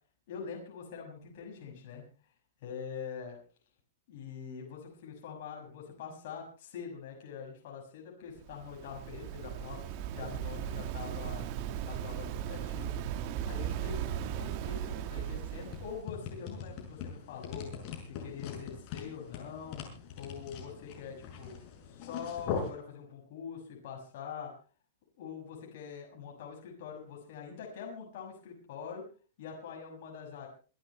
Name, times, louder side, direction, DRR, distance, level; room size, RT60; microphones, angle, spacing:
voice 1, 0.3-2.0 2.6-3.4 4.1-9.8 10.1-11.4 11.8-12.9 13.4-17.7 18.0-19.8 20.2-21.6 21.9-24.5 25.2-29.1 29.4-30.5, left 6 dB, 50° left, -1 dB, 6.5 m, -44 dB
Waves surf, 8.4-16.0, right 10 dB, 40° right, 1.5 m, -37 dB
sound 1, 15.6-22.7, left 6 dB, 35° left, 6.0 m, -41 dB
27.0 x 12.5 x 3.2 m, 0.38 s
supercardioid pair, 165°, 0 cm